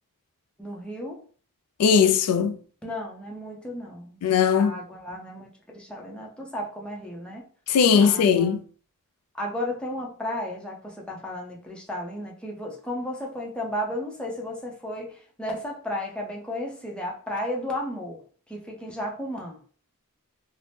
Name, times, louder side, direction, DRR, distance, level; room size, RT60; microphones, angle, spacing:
voice 1, 0.6-1.2 2.8-4.2 4.5-7.4 8.0-8.6 9.3-18.2 18.5-19.6, left 1 dB, 5° left, 0.6 m, -34 dB
voice 2, 1.8-2.6 4.2-4.8 7.7-8.6, left 6 dB, 85° left, 0.3 m, -19 dB
2.7 x 2.0 x 3.3 m
head